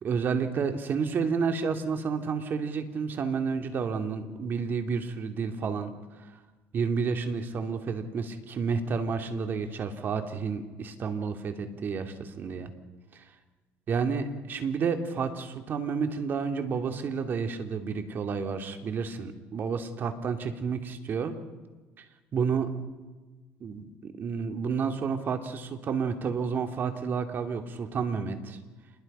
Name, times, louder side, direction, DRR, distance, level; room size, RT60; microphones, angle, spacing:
voice 1, 0.0-5.9 6.7-12.7 13.1-13.2 13.9-21.3 22.0-22.1 22.3-22.7 23.6-28.6, right 5 dB, 45° right, 6 dB, 2.8 m, -30 dB
28.0 x 21.5 x 5.7 m, 1.3 s
supercardioid pair, 105°, 5 cm